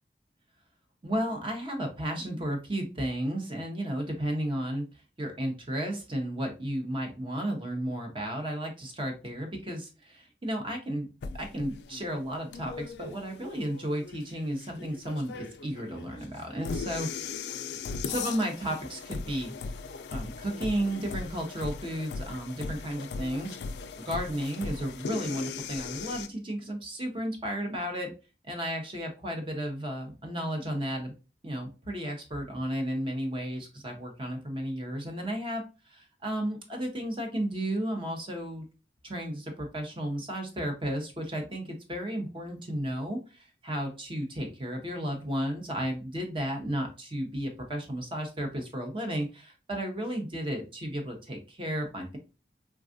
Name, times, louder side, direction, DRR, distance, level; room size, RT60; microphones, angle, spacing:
voice 1, 1.0-4.9 5.2-11.1 11.3-17.3 18.0-19.5 20.1-23.6 24.0-28.1 28.5-31.1 31.4-38.7 39.0-52.2, equal, 30° right, 3 dB, 0.7 m, -33 dB
sound 1, 11.2-26.3, left 5 dB, 70° left, 0.3 m, -39 dB
3.4 x 2.3 x 2.5 m, 0.31 s
head